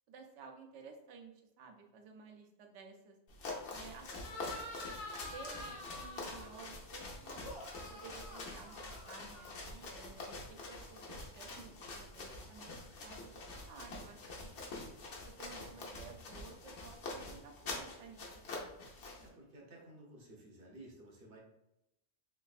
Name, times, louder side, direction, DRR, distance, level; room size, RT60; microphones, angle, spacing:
voice 1, 0.1-1.3 1.6-3.2 3.7-4.4 4.9-7.5 7.9-12.7 13.0-14.5 15.2-18.7, right 5 dB, 85° right, 4 dB, 0.9 m, -54 dB
sound 1, 3.3-19.3, left 2 dB, 85° left, 1.1 m, -46 dB
sound 2, 4.2-6.7 7.4-9.9, left 1 dB, 65° left, 1.1 m, -48 dB
voice 2, 19.2-21.4, right 1 dB, 55° right, -1 dB, 0.9 m, -55 dB
3.4 x 3.0 x 2.4 m, 0.85 s
omnidirectional pair, 1.2 m